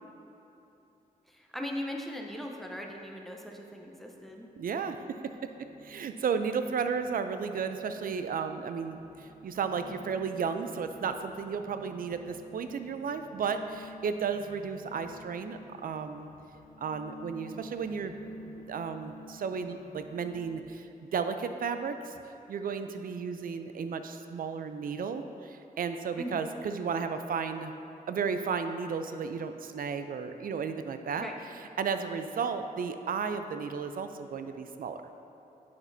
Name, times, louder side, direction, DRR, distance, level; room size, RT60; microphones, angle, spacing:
voice 1, 1.3-4.5 26.2-26.5 31.2-31.4, left 1 dB, ahead, 1 dB, 0.7 m, -39 dB
sound 1, 4.1-20.6, equal, 60° left, 0.8 m, -52 dB
voice 2, 4.6-5.0 5.4-5.5 5.8-16.3 16.8-18.1 18.5-22.2 22.5-27.7 28.1-31.3 31.6-35.0, right 6 dB, 65° right, 8 dB, 0.4 m, -33 dB
8.5 x 5.9 x 2.7 m, 3.0 s
cardioid pair, 75°, 16 cm